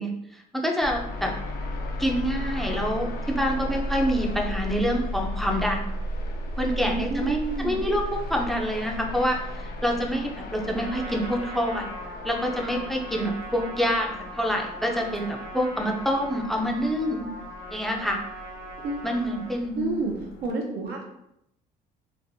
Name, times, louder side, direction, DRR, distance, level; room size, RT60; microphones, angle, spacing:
voice 1, 0.0-1.3 2.0-5.9 6.6-9.4 9.8-11.8 12.2-17.3 17.7-18.2 19.0-20.0, equal, ahead, 1 dB, 0.5 m, -27 dB
sound 1, 0.8-20.5, left 1 dB, 60° left, 0.5 m, -35 dB
voice 2, 6.8-7.8 18.8-19.1 19.8-20.1 20.4-21.0, right 3 dB, 70° right, 0 dB, 0.6 m, -29 dB
Trumpet, 10.6-19.6, right 1 dB, 90° right, 1.1 m, -40 dB
3.1 x 2.5 x 2.6 m, 0.79 s
cardioid pair, 110°, 17 cm